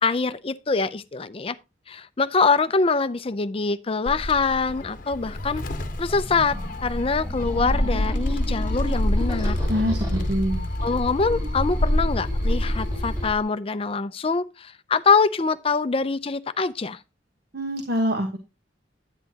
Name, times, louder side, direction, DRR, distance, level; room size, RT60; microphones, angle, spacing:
voice 1, 0.0-1.6 1.9-5.6 6.0-9.6 10.8-17.0, left 4 dB, 30° left, 0.5 m, -24 dB
Gull seagull, 4.1-13.4, left 1 dB, 45° left, 1.0 m, -28 dB
sound 1, 5.4-13.3, left 1 dB, 20° right, 4.0 m, -32 dB
voice 2, 9.7-10.7 17.5-18.4, equal, 60° right, 1.3 m, -25 dB
9.9 x 9.1 x 2.8 m
head